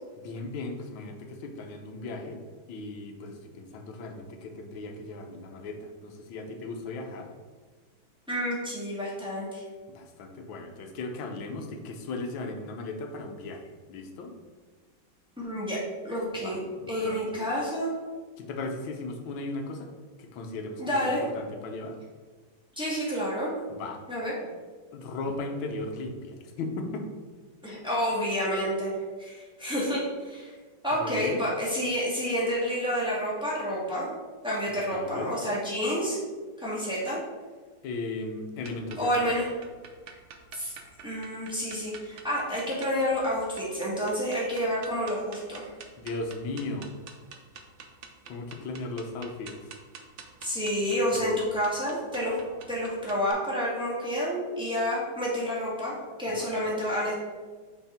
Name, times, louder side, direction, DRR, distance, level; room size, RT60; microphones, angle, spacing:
voice 1, 0.2-2.4 2.7-7.3 9.9-14.3 16.3-17.5 18.4-19.9 20.2-22.0 23.7-24.0 24.9-27.1 31.0-31.4 34.9-35.3 37.8-39.4 46.0-46.9 48.3-49.6 51.2-51.4 56.3-56.6, left 2 dB, 75° left, 4 dB, 1.6 m, -37 dB
voice 2, 8.3-9.6 15.4-17.9 20.8-21.2 22.7-23.5 24.1-24.3 27.6-28.9 29.2-30.5 30.8-34.1 34.4-36.2 36.6-37.2 39.0-39.5 40.5-40.7 41.0-45.7 50.4-52.4 52.7-57.1, equal, 5° right, -7 dB, 1.7 m, -29 dB
sound 1, 38.6-53.3, right 5 dB, 85° right, 0.6 m, -48 dB
5.7 x 4.9 x 4.3 m, 1.4 s
omnidirectional pair, 2.2 m